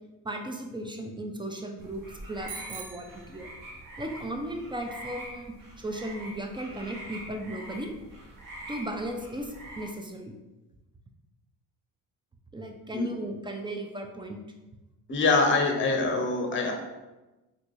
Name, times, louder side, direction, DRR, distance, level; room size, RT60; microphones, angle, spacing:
voice 1, 0.2-2.0 2.3-3.5 4.0-7.9 8.7-10.4 12.5-14.4, right 1 dB, 10° right, 3 dB, 0.3 m, -36 dB
sound 1, 1.8-9.9, right 1 dB, 45° right, 1.1 m, -44 dB
Bicycle bell, 2.5-4.0, right 7 dB, 85° right, 0.6 m, -44 dB
voice 2, 15.1-16.7, left 3 dB, 25° left, 3 dB, 0.7 m, -24 dB
3.7 x 2.3 x 3.1 m, 1.1 s
supercardioid pair, 65°, 45 cm